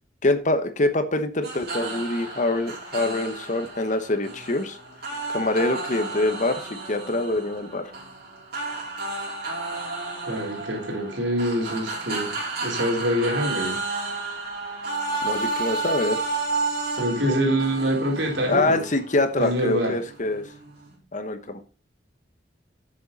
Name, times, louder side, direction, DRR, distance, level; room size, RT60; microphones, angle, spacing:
voice 1, 0.2-4.8 5.3-7.9 15.2-16.2 18.5-20.4 21.1-21.6, left 2 dB, 40° left, 1.1 m, -25 dB
sound 1, 1.4-21.0, right 3 dB, 55° right, 4.8 m, -32 dB
voice 2, 10.3-13.8 17.0-18.9 19.4-20.0, equal, 80° right, 4.0 m, -25 dB
11.0 x 7.6 x 4.1 m
head